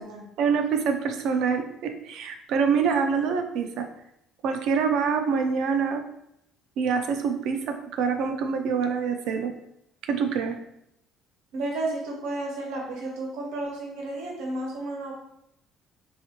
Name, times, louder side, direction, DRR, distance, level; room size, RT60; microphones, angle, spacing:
voice 1, 0.4-3.9 4.4-6.0 6.8-9.5 10.0-10.6, right 6 dB, 60° right, 6 dB, 0.4 m, -25 dB
voice 2, 11.5-15.1, right 2 dB, 85° right, -1 dB, 0.8 m, -32 dB
3.6 x 2.4 x 2.8 m, 0.79 s
cardioid pair, 175°, 0 cm